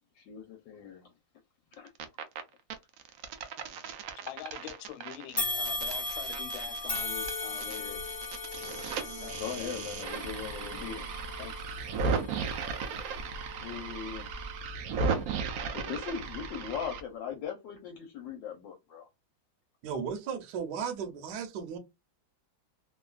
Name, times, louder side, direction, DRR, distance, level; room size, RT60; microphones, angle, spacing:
voice 1, 0.2-1.1 1.7-1.9 9.3-11.1 13.6-14.3 15.7-19.0, left 7 dB, 70° left, 1.3 m, -39 dB
sound 1, 1.7-2.4 2.7-7.8 8.0-17.0, right 5 dB, 85° right, 0.7 m, -36 dB
voice 2, 4.3-8.0 9.2-9.7 11.4-11.7, left 12 dB, 90° left, 1.4 m, -44 dB
sound 2, 5.4-14.7 15.2-15.4 16.3-16.4, left 2 dB, 30° left, 0.6 m, -38 dB
voice 3, 19.8-21.8, right 7 dB, 70° right, 1.2 m, -35 dB
3.3 x 2.3 x 2.3 m
omnidirectional pair, 2.2 m